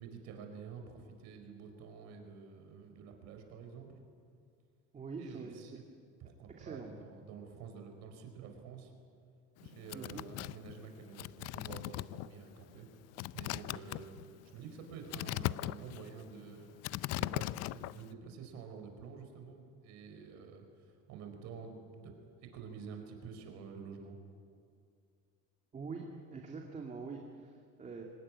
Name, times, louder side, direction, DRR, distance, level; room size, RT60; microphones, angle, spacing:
voice 1, 0.0-4.0 5.2-5.8 6.2-8.9 9.6-12.9 13.3-16.8 17.1-24.2, right 6 dB, 65° right, 5 dB, 4.8 m, -49 dB
voice 2, 4.9-5.8 6.6-6.9 9.9-10.2 25.7-26.0 26.3-28.0, right 4 dB, 25° right, 1 dB, 2.4 m, -44 dB
sound 1, 9.6-18.1, left 17 dB, 60° left, 0.5 m, -39 dB
25.0 x 19.0 x 9.8 m, 2.3 s
cardioid pair, 145°, 29 cm